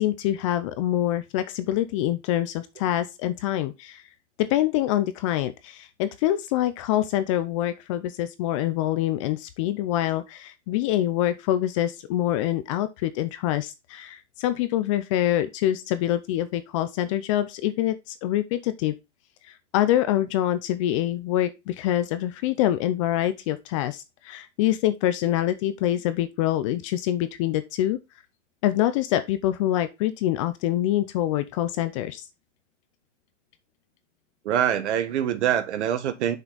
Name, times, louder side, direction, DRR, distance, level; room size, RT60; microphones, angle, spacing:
voice 1, 0.0-4.0 4.4-18.9 19.7-28.0 28.6-32.2, left 13 dB, 25° left, 0.4 m, -25 dB
voice 2, 34.4-36.4, right 10 dB, 65° right, 1.5 m, -24 dB
6.1 x 5.4 x 3.9 m
hypercardioid pair, 145°, 37 cm